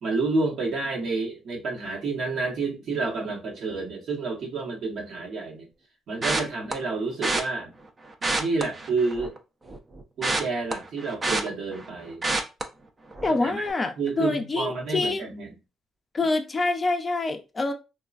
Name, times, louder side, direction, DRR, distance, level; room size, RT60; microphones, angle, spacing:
voice 1, 0.0-5.7 6.1-7.7 8.4-9.4 10.2-12.2 13.3-13.7 14.0-15.5, right 3 dB, 65° right, 1.0 m, -29 dB
sound 1, 6.2-6.7 7.2-7.4 8.1-9.4 9.7-11.9 12.2-12.6 13.1-13.4 13.6-13.7, right 2 dB, 30° right, 0.5 m, -27 dB
voice 2, 13.2-15.2 16.1-17.7, left 3 dB, 30° left, 0.4 m, -26 dB
3.0 x 2.3 x 2.4 m
cardioid pair, 90°, 0 cm